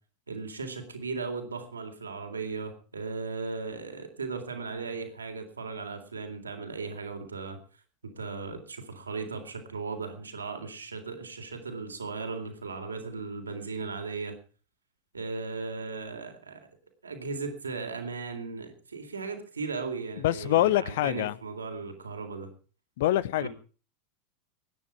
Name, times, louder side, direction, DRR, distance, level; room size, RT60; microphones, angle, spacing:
voice 1, 0.3-7.6 8.2-14.4 15.1-16.7 17.0-22.5 23.4-23.5, right 4 dB, 85° right, 5 dB, 3.8 m, -37 dB
voice 2, 20.2-21.4 23.0-23.5, left 14 dB, 65° left, 20 dB, 0.9 m, -25 dB
23.0 x 10.0 x 4.7 m, 0.38 s
figure-of-eight pair, 90°, 0 cm